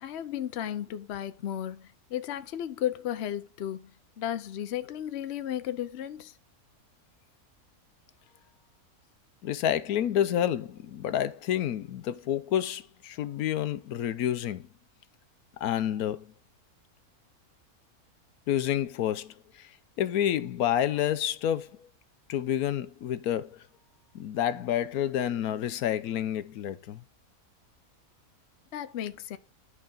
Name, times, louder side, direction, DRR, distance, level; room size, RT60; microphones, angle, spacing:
voice 1, 0.0-3.9 4.2-6.3 28.7-29.4, left 11 dB, 55° left, 0.8 m, -34 dB
voice 2, 9.4-14.7 15.6-16.3 18.5-19.7 20.0-21.9 22.3-23.6 24.1-27.0, left 10 dB, 80° left, 1.1 m, -29 dB
11.0 x 4.8 x 3.8 m
omnidirectional pair, 1.6 m